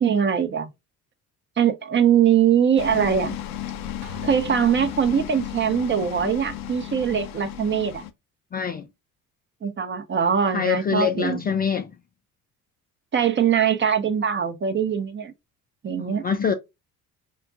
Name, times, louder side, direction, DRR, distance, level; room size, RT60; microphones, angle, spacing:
voice 1, 0.0-0.7 1.6-3.4 4.2-8.0 9.6-11.4 13.1-15.3 15.8-16.2, right 8 dB, 25° right, 0.7 m, -22 dB
sound 1, 2.8-8.1, left 10 dB, 75° left, 0.6 m, -34 dB
sound 2, 4.0-5.5, left 2 dB, 85° right, 0.9 m, -46 dB
voice 2, 8.5-8.9 10.5-11.9 16.0-16.5, left 7 dB, 25° left, 0.4 m, -25 dB
5.0 x 2.2 x 2.4 m
figure-of-eight pair, 50°, 43 cm